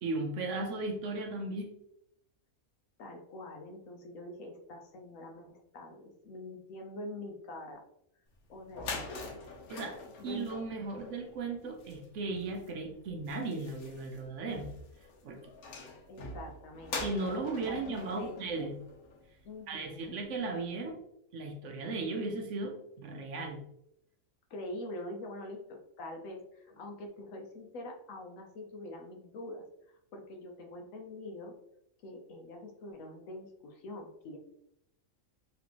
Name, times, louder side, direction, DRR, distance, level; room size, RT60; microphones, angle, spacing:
voice 1, 0.0-1.7 9.7-9.9 10.2-14.7 15.2-15.5 17.0-18.8 19.7-21.0 21.3-23.6, right 3 dB, 65° right, 4 dB, 0.9 m, -36 dB
voice 2, 3.0-7.8 8.5-9.1 9.7-10.5 16.1-17.0 17.3-18.7 19.4-20.2 24.5-29.6 30.1-31.6 32.0-34.4, left 1 dB, 70° left, 2 dB, 1.1 m, -45 dB
sound 1, 8.4-8.5 8.7-19.4, left 3 dB, 85° left, 1.3 m, -44 dB
4.1 x 3.4 x 2.9 m, 0.77 s
omnidirectional pair, 1.5 m